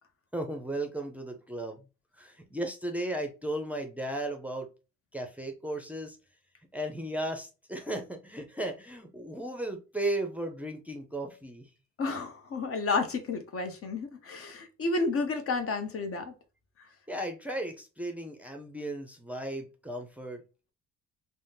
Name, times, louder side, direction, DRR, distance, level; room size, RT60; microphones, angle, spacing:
voice 1, 0.3-1.8 2.2-4.7 5.1-6.2 6.7-11.7 17.1-20.4, right 1 dB, 5° right, 0.5 m, -35 dB
voice 2, 12.0-16.3, left 3 dB, 50° left, 0.7 m, -31 dB
3.4 x 2.1 x 2.7 m
cardioid pair, 90°, 30 cm